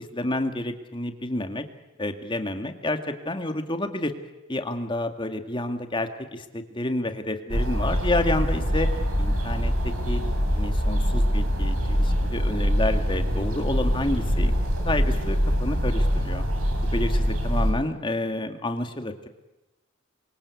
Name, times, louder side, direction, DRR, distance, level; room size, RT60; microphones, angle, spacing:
voice 1, 0.0-1.6 2.0-4.1 4.5-8.9 9.2-10.2 10.6-14.5 14.8-16.4 16.8-19.3, left 1 dB, 25° left, 6 dB, 2.1 m, -29 dB
sound 1, 7.5-17.7, equal, 75° right, 6.4 m, -24 dB
28.5 x 23.5 x 8.5 m, 1.0 s
head